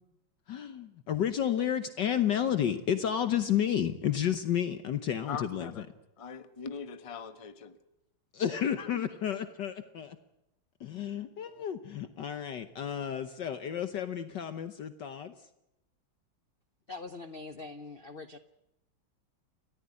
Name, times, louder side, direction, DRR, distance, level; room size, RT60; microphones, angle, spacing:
voice 1, 0.5-5.9 8.3-10.2 10.8-15.3, left 9 dB, 65° left, 9 dB, 1.6 m, -31 dB
voice 2, 5.3-5.8 6.2-7.8 8.9-9.0, left 6 dB, 20° left, 10 dB, 1.0 m, -41 dB
voice 3, 16.9-18.4, left 3 dB, 45° left, 10 dB, 0.7 m, -43 dB
29.5 x 14.0 x 9.7 m, 0.89 s
omnidirectional pair, 2.2 m